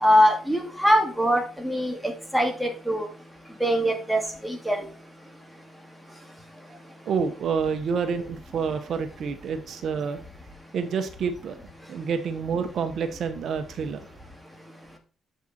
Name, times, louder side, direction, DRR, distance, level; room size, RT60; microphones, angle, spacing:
voice 1, 0.0-1.9 2.3-3.1 3.6-4.2 4.7-4.8, equal, ahead, 2 dB, 2.5 m, -21 dB
voice 2, 7.1-10.2 10.7-11.6 11.9-14.0, right 6 dB, 60° right, 8 dB, 1.0 m, -28 dB
7.6 x 6.8 x 4.3 m, 0.37 s
cardioid pair, 90°, 0 cm